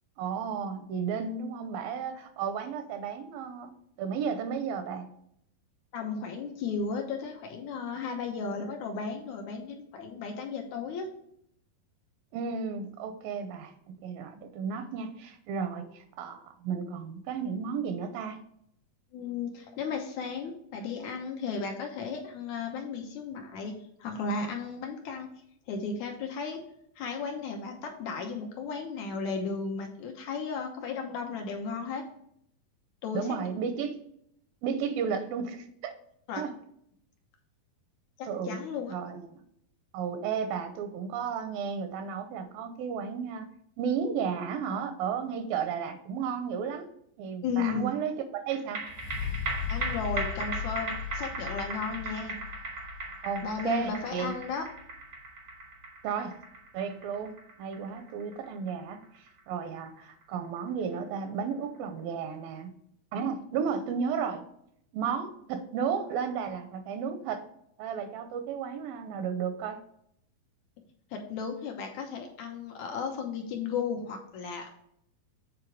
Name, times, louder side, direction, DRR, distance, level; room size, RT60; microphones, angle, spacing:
voice 1, 0.2-3.7 4.0-5.1 12.3-18.4 33.1-34.0 34.6-35.9 36.4-36.5 38.3-38.6 38.9-39.4 39.9-43.5 43.8-46.9 47.2-48.9 53.2-54.3 56.0-56.4 56.7-59.0 59.5-62.7 63.1-64.4 64.9-67.5 67.8-69.8, right 6 dB, 80° right, 8 dB, 2.3 m, -33 dB
voice 2, 5.9-11.1 19.1-25.3 25.7-26.6 27.0-32.0 33.0-33.4 36.3-36.4 38.2-38.9 47.4-47.9 49.7-52.4 53.4-54.7 71.1-74.7, left 5 dB, 70° left, 3 dB, 1.9 m, -34 dB
sound 1, 48.5-61.2 61.5-61.6, right 3 dB, 55° right, 1.2 m, -39 dB
sound 2, 48.8-56.6 57.2-57.3, left 7 dB, 90° left, 2.6 m, -39 dB
7.8 x 4.5 x 4.7 m, 0.71 s
omnidirectional pair, 4.3 m